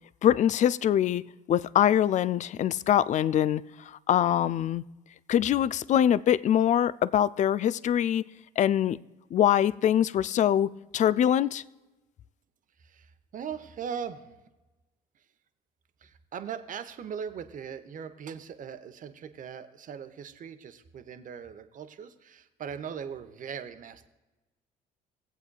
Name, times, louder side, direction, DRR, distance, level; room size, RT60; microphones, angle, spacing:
voice 1, 0.2-4.8 5.3-8.3 8.6-9.0 9.3-11.6, left 10 dB, 40° left, 0.4 m, -24 dB
voice 2, 12.8-14.4 15.2-15.3 16.0-24.1, right 7 dB, 45° right, 0.9 m, -40 dB
18.0 x 8.0 x 2.3 m
hypercardioid pair, 60°, 19 cm